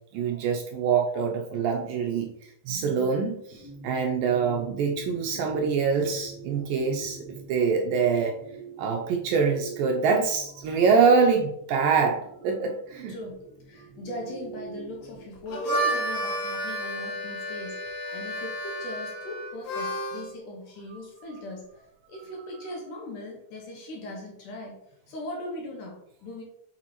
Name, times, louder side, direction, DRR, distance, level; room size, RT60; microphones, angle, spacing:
voice 1, 0.1-2.3 2.7-8.3 8.8-13.2, right 5 dB, 75° right, 1 dB, 2.2 m, -25 dB
sound 1, 3.5-15.2, right 4 dB, 10° right, 1.8 m, -45 dB
voice 2, 13.1-21.8 22.1-24.8 25.1-26.4, left 1 dB, 65° left, -1 dB, 2.7 m, -39 dB
Harmonica, 15.4-20.3, right 1 dB, 85° left, 3.7 m, -31 dB
6.8 x 6.3 x 3.0 m, 0.74 s
omnidirectional pair, 4.5 m